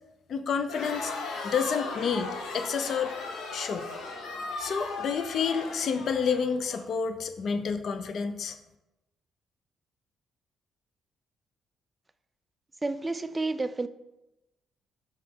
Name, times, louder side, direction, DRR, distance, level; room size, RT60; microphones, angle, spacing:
voice 1, 0.3-1.1 1.4-2.3 2.5-3.1 3.5-3.9 4.6-8.6, left 6 dB, 60° left, 9 dB, 0.6 m, -29 dB
Crowd, 0.6-6.8, left 3 dB, 85° left, 1.1 m, -37 dB
voice 2, 12.8-13.9, right 3 dB, 20° right, 12 dB, 0.4 m, -30 dB
5.7 x 4.8 x 3.6 m, 0.95 s
cardioid pair, 90°, 0 cm